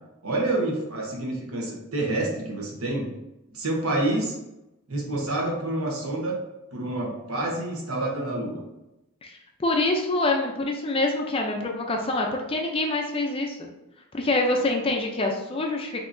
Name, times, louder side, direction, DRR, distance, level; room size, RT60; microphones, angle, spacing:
voice 1, 0.2-3.1 3.5-4.3 4.9-6.4 6.7-8.6, right 2 dB, 75° right, -1 dB, 1.0 m, -28 dB
voice 2, 9.2-13.6 14.1-16.0, left 2 dB, 25° left, 2 dB, 0.4 m, -26 dB
5.6 x 2.8 x 2.6 m, 0.95 s
head